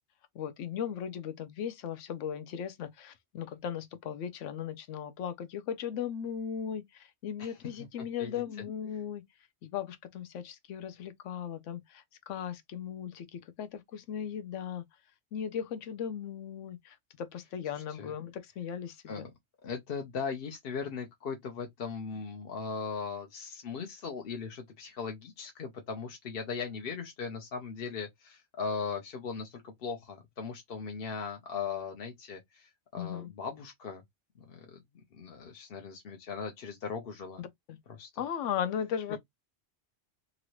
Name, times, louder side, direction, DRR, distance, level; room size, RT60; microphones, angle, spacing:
voice 1, 0.3-9.2 9.6-14.9 15.3-19.3 33.0-33.3 37.4-37.8 38.2-39.2, left 8 dB, 85° left, 1.0 m, -37 dB
voice 2, 19.6-34.0 34.4-34.8 35.1-37.4 37.9-38.1, left 5 dB, 55° left, 0.8 m, -38 dB
2.9 x 2.6 x 3.0 m
omnidirectional pair, 1.2 m